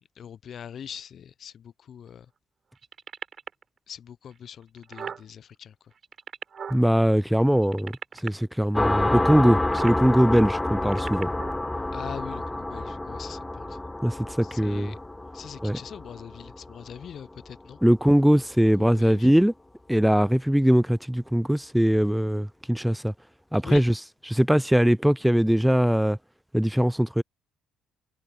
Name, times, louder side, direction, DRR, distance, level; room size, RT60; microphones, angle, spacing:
voice 1, 0.2-2.3 3.9-5.7 11.9-13.8 14.4-15.0 15.3-17.8 18.8-19.3 23.6-23.8, left 8 dB, 55° left, 0.6 m, -42 dB
sound 1, 2.8-3.6 4.3-4.4 4.6-5.2 5.9-6.8 7.6-8.3 9.6-10.0 10.7-11.6 12.3-12.4, right 7 dB, 50° right, 3.4 m, -38 dB
voice 2, 6.7-7.9 8.2-11.3 14.0-14.9 15.6-15.8 17.8-19.5 19.9-23.1 23.5-24.0 24.3-26.2 26.5-27.2, equal, 5° right, 0.4 m, -21 dB
deep gong, 8.7-18.0, left 2 dB, 15° left, 1.2 m, -29 dB
hypercardioid pair, 50°, 0 cm